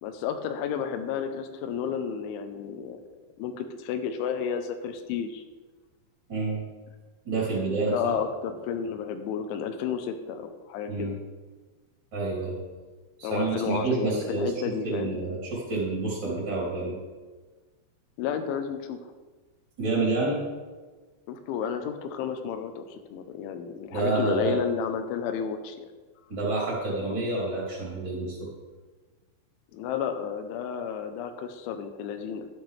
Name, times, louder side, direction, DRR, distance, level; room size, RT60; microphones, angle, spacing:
voice 1, 0.0-3.0 3.4-5.4 7.8-11.1 13.2-15.1 18.2-19.0 21.3-25.9 29.7-32.5, left 7 dB, 85° left, 8 dB, 3.2 m, -31 dB
voice 2, 6.3-6.6 7.2-8.2 10.9-11.1 12.1-12.6 13.2-16.9 19.8-20.4 23.9-24.6 26.3-28.5, right 3 dB, 30° right, -6 dB, 3.4 m, -28 dB
12.0 x 10.5 x 3.4 m, 1.3 s
omnidirectional pair, 5.5 m